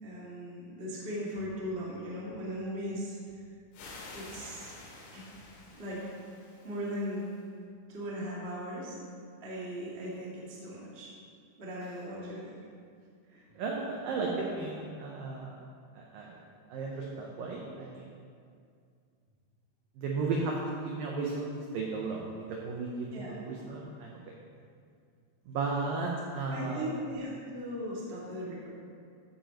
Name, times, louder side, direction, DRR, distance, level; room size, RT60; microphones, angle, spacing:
voice 1, 0.0-3.4 4.1-4.7 5.1-5.3 5.7-6.1 6.6-7.3 7.9-9.0 9.4-11.1 11.6-12.5 13.3-13.5 14.3-14.4 23.1-23.3 26.5-28.7, equal, 50° right, -6 dB, 0.7 m, -38 dB
sound 1, 3.7-7.4, left 3 dB, 75° left, 3.9 m, -49 dB
voice 2, 13.6-15.6 16.0-16.4 16.7-18.1 20.0-21.5 21.7-24.2 25.5-26.8, right 3 dB, 85° right, -2 dB, 2.0 m, -34 dB
14.5 x 9.0 x 3.0 m, 2.2 s
omnidirectional pair, 5.3 m